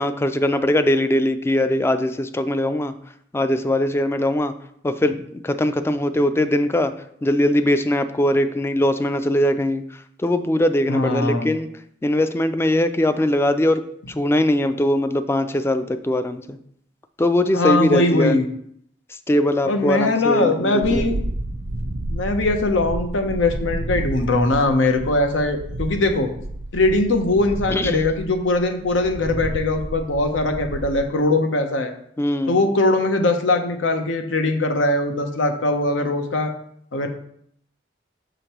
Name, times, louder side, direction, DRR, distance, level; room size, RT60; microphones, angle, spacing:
voice 1, 0.0-2.9 3.3-4.5 4.8-6.9 7.2-9.8 10.2-11.7 12.0-13.8 14.2-16.6 17.2-18.3 19.3-21.0 27.7-28.0 32.2-32.6, left 1 dB, 15° left, 11 dB, 0.3 m, -21 dB
voice 2, 10.9-11.6 17.5-18.4 19.7-21.2 22.1-26.3 26.7-31.9 32.5-36.5 36.9-37.1, left 2 dB, 85° left, 6 dB, 0.8 m, -21 dB
sound 1, 20.8-31.0, right 1 dB, 80° right, 0.7 m, -31 dB
6.4 x 5.0 x 3.0 m, 0.67 s
head